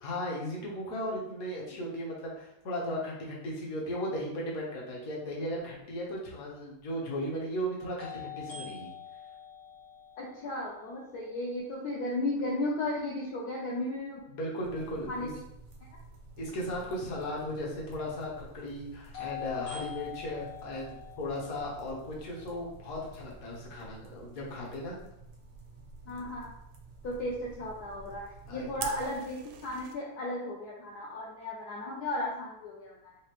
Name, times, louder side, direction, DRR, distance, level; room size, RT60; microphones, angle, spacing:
voice 1, 0.0-8.9 14.3-15.3 16.4-24.9 28.5-28.9, equal, 50° left, -3 dB, 1.2 m, -36 dB
sound 1, 6.0-6.1 8.0-11.9 19.1-23.2, left 9 dB, 70° left, 2.1 m, -45 dB
voice 2, 10.2-14.2 15.1-15.3 26.1-26.5 27.0-33.1, left 1 dB, 85° left, -3 dB, 0.8 m, -35 dB
tadpoles rawnoisy, 14.6-29.2, right 3 dB, 70° right, 0.8 m, -51 dB
Fire, 28.8-29.9, right 6 dB, 85° right, 1.5 m, -41 dB
5.1 x 2.4 x 2.9 m, 0.81 s
omnidirectional pair, 2.4 m